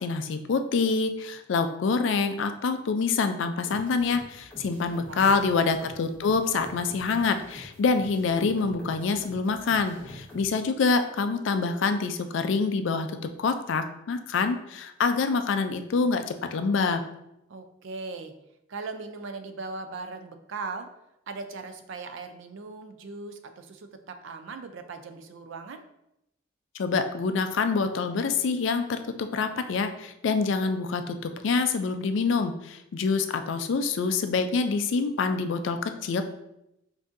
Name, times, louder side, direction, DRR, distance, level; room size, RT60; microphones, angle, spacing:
voice 1, 0.0-13.1 13.4-17.0 26.7-36.2, left 4 dB, 70° left, 8 dB, 0.4 m, -26 dB
sound 1, 3.7-10.5, equal, 5° left, 0.7 m, -46 dB
voice 2, 4.8-5.4 17.5-18.3 18.7-20.9 21.3-25.8, right 3 dB, 70° right, 8 dB, 0.4 m, -39 dB
6.0 x 2.6 x 2.5 m, 0.85 s
head